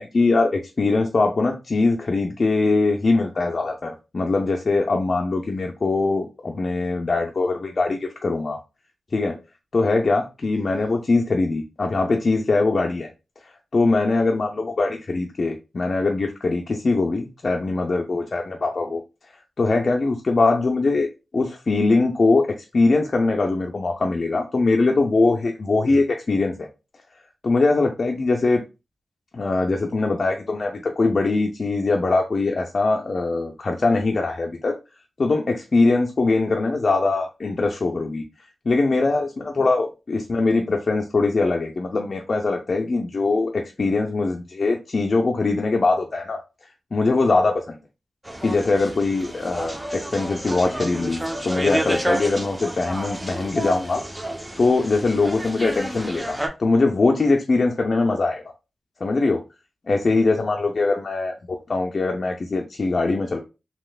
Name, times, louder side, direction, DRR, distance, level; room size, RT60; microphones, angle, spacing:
voice 1, 0.0-8.6 9.1-9.4 9.7-13.1 13.4-19.0 19.6-21.1 21.3-26.7 27.4-28.6 29.3-34.8 35.2-38.2 38.7-46.4 46.9-47.8 48.4-54.0 54.6-58.4 59.0-59.4 59.9-63.4, left 3 dB, 55° left, 0.5 m, -22 dB
sound 1, 48.2-56.5, right 1 dB, 15° right, 0.7 m, -30 dB
3.1 x 2.8 x 2.3 m
cardioid pair, 45°, 0 cm